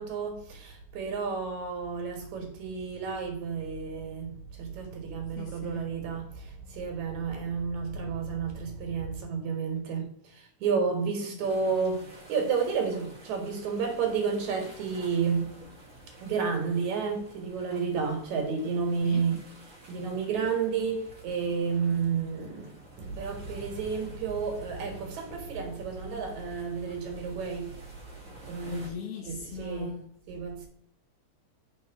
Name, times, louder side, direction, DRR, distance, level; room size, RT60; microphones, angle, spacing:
voice 1, 0.0-15.5 16.2-19.4 19.9-27.8 28.5-28.9 29.2-29.9 30.3-30.7, right 5 dB, 75° right, 2.9 m, -31 dB
voice 2, 5.4-6.0 19.0-19.2 28.7-30.1, left 6 dB, 70° left, 1.6 m, -39 dB
sound 1, 11.4-28.9, right 2 dB, 30° right, 1.7 m, -51 dB
5.3 x 4.5 x 5.8 m
omnidirectional pair, 3.3 m